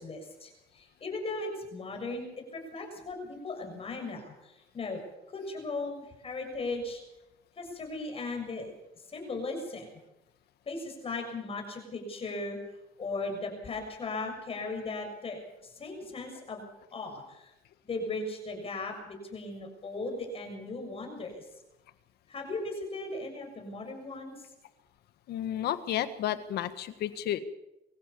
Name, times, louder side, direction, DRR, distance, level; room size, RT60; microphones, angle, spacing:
voice 1, 0.0-2.3 2.5-5.0 5.3-7.0 7.6-8.7 9.0-10.0 10.7-12.6 13.0-16.6 16.9-17.5 17.8-21.5 22.3-24.3, left 3 dB, 35° left, 3 dB, 7.0 m, -37 dB
voice 2, 25.3-27.4, left 11 dB, 75° left, 11 dB, 1.6 m, -32 dB
24.0 x 15.5 x 7.1 m, 0.93 s
cardioid pair, 110°, 17 cm